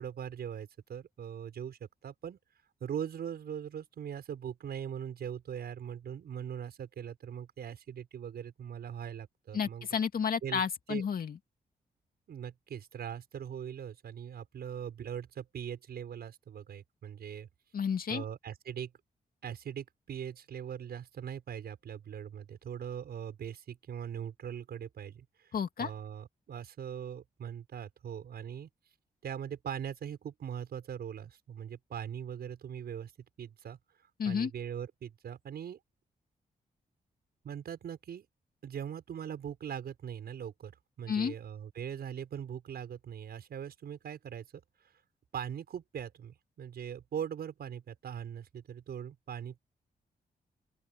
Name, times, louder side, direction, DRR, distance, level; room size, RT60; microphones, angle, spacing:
voice 1, 0.0-2.4 2.8-9.9 10.4-10.6 10.9-11.0 12.3-17.5 18.1-18.9 19.4-28.7 29.2-33.1 33.4-33.8 34.2-35.8 37.4-38.3 38.6-40.7 41.0-44.5 45.3-49.6, right 8 dB, 80° right, 6.7 m, -41 dB
voice 2, 9.5-11.4 17.7-18.2 25.5-25.9 34.2-34.5 41.1-41.3, left 7 dB, 65° left, 2.5 m, -31 dB
open air
cardioid pair, 65°, 16 cm